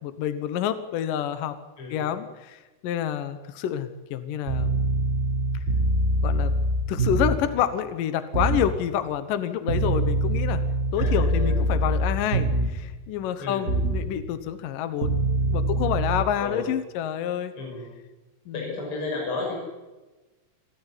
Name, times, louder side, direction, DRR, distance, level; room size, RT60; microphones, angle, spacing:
voice 1, 0.0-1.6 1.9-4.8 6.2-6.5 6.9-10.6 10.9-15.2 15.5-17.5 18.5-18.7, left 10 dB, 70° left, 10 dB, 2.6 m, -28 dB
sound 1, 4.5-7.5 8.3-8.7 9.7-12.9 13.7-14.1 15.0-16.2, right 1 dB, 25° right, 2.0 m, -24 dB
voice 2, 11.0-11.6 13.4-13.7 16.3-16.6 17.6-17.9 18.5-19.5, left 3 dB, 35° left, -2 dB, 7.0 m, -32 dB
28.0 x 13.5 x 10.0 m, 1.2 s
omnidirectional pair, 4.4 m